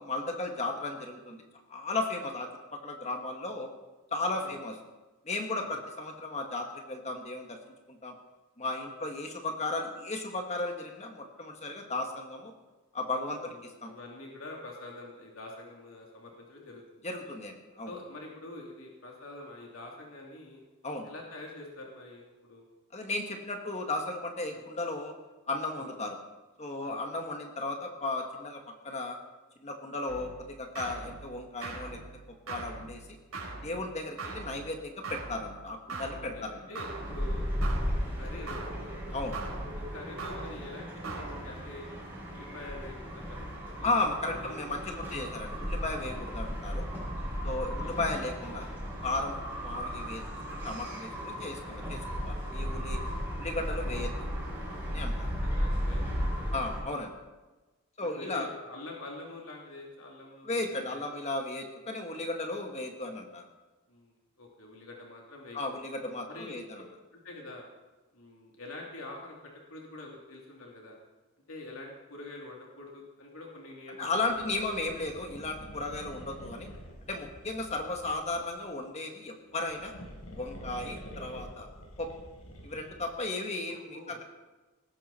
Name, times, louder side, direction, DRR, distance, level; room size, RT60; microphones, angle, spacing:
voice 1, 0.0-1.4 1.7-2.5 2.8-3.7 4.1-4.8 5.2-7.6 7.9-8.1 8.6-12.5 12.9-13.9 17.0-17.9 20.8-21.1 22.9-25.1 25.5-26.2 26.6-29.2 29.6-30.3 30.6-32.0 32.5-33.2 33.6-36.5 39.1-39.4 43.8-46.9 47.4-48.7 49.0-50.2 50.5-53.0 53.4-54.3 54.9-55.3 56.5-57.1 58.0-58.5 60.4-63.4 65.5-66.8 74.0-76.7 77.1-79.9 80.3-81.7 82.0-82.1 82.6-84.2, left 2 dB, 30° left, 3 dB, 1.7 m, -35 dB
voice 2, 4.2-4.6 5.6-5.8 13.4-17.0 17.8-20.6 21.0-22.6 24.5-24.6 26.8-27.0 33.7-33.9 36.3-37.5 38.0-39.0 39.9-41.9 42.3-43.9 44.3-45.2 45.9-46.1 47.6-48.0 55.4-56.5 58.0-61.0 63.9-65.8 66.3-66.6 67.1-67.6 68.1-71.0 71.5-74.4 83.2-83.3 83.9-84.2, left 2 dB, 65° left, -1 dB, 3.1 m, -46 dB
sound 1, 30.1-41.8, right 3 dB, 75° right, 4.8 m, -42 dB
sound 2, 36.9-56.8, equal, 10° right, 7.1 m, -35 dB
sound 3, 74.1-78.6 79.5-83.2, equal, 90° left, 4.0 m, -47 dB
19.0 x 15.5 x 4.4 m, 1.2 s
head